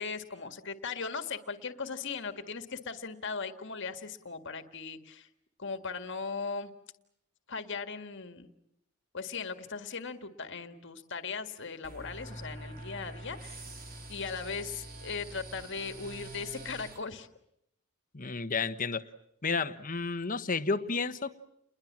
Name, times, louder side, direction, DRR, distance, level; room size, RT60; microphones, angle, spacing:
voice 1, 0.0-5.3 5.6-6.7 7.5-8.5 9.1-13.7 14.1-17.3, left 5 dB, 55° left, 8 dB, 1.8 m, -38 dB
sound 1, 11.8-17.0, right 1 dB, 40° right, 4.2 m, -45 dB
voice 2, 18.1-19.1 19.4-21.3, left 4 dB, 40° left, 11 dB, 1.2 m, -31 dB
30.0 x 21.5 x 7.4 m, 0.78 s
head